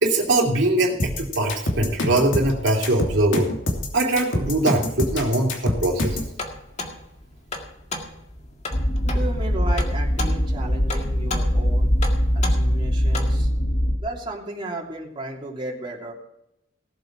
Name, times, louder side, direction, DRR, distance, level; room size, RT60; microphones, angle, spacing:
voice 1, 0.0-3.5 3.9-6.2, right 2 dB, 70° right, -1 dB, 2.8 m, -22 dB
sound 1, 1.0-6.3, left 1 dB, 85° left, 2.9 m, -26 dB
sound 2, 6.2-13.5, left 2 dB, 40° left, 1.9 m, -35 dB
sound 3, 8.7-14.0, equal, 60° left, 1.7 m, -22 dB
voice 2, 9.0-11.9 12.3-13.5 14.0-16.1, right 1 dB, 25° right, -3 dB, 3.1 m, -34 dB
18.0 x 7.9 x 4.8 m, 0.80 s
head